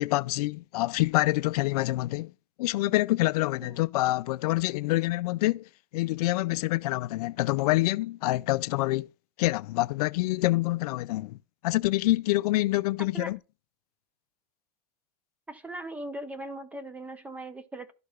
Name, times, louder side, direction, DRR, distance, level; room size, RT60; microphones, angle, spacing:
voice 1, 0.0-2.3 2.6-5.7 5.9-9.1 9.4-11.4 11.6-13.4, left 19 dB, 70° left, 0.4 m, -26 dB
voice 2, 15.5-17.9, right 1 dB, 5° right, 0.8 m, -39 dB
12.5 x 4.7 x 2.4 m
supercardioid pair, 150°, 20 cm